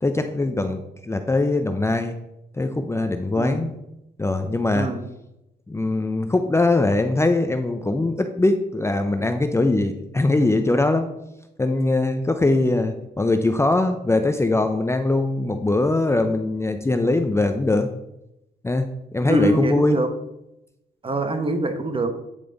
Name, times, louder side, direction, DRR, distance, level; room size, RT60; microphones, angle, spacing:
voice 1, 0.0-2.2 2.5-3.7 4.2-4.9 5.7-11.1 11.6-17.9 18.6-20.0, left 2 dB, 15° left, 7 dB, 0.5 m, -21 dB
voice 2, 3.4-3.7 4.7-5.0 19.3-20.1 21.0-22.1, right 2 dB, 30° right, 7 dB, 1.0 m, -24 dB
8.9 x 4.9 x 3.9 m, 0.87 s
cardioid pair, 85°, 18 cm